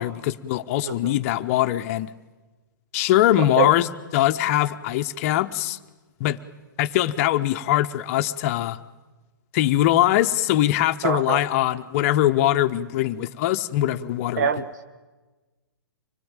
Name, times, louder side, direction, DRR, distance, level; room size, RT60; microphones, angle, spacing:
voice 1, 0.0-2.1 2.9-5.8 6.2-6.4 6.8-8.8 9.5-14.5, left 14 dB, 40° left, 10 dB, 0.8 m, -22 dB
voice 2, 0.8-1.1 3.6-3.7 11.0-11.4 14.4-14.7, right 7 dB, 55° right, 10 dB, 1.0 m, -24 dB
25.5 x 19.0 x 8.9 m, 1.3 s
hypercardioid pair, 125°, 11 cm